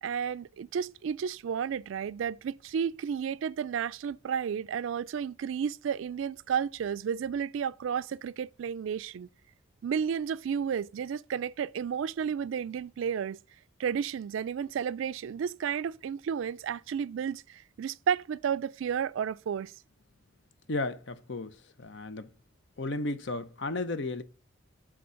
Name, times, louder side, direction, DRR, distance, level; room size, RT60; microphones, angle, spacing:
voice 1, 0.0-9.3 9.8-13.4 13.8-19.7, right 7 dB, 70° right, 0.3 m, -32 dB
voice 2, 20.7-22.3 22.8-24.2, left 2 dB, 60° left, 0.7 m, -34 dB
7.0 x 3.7 x 6.2 m
head